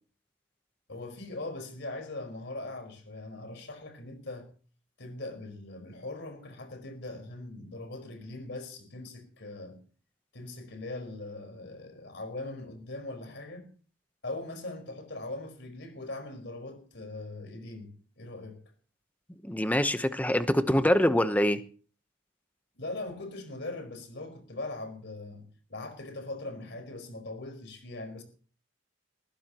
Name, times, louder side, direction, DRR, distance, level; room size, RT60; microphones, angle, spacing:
voice 1, 0.9-4.5 5.0-9.8 10.3-13.6 14.2-18.6 22.7-28.2, left 2 dB, 65° left, 4.8 m, -40 dB
voice 2, 19.4-21.6, left 1 dB, 10° left, 1.0 m, -24 dB
20.0 x 15.0 x 3.0 m
head